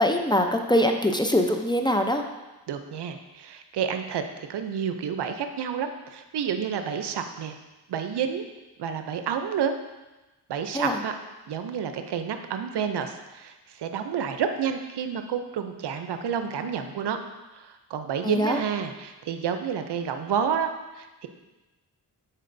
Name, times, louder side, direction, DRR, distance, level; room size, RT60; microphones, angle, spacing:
voice 1, 0.0-2.2 10.7-11.0 18.2-18.6, left 1 dB, 10° left, 4 dB, 0.6 m, -23 dB
voice 2, 2.7-7.6 7.9-8.5 8.8-9.7 10.5-11.2 11.5-17.2 17.6-21.3, right 7 dB, 75° right, 7 dB, 0.6 m, -30 dB
9.9 x 4.4 x 2.6 m, 1.1 s
cardioid pair, 50°, 41 cm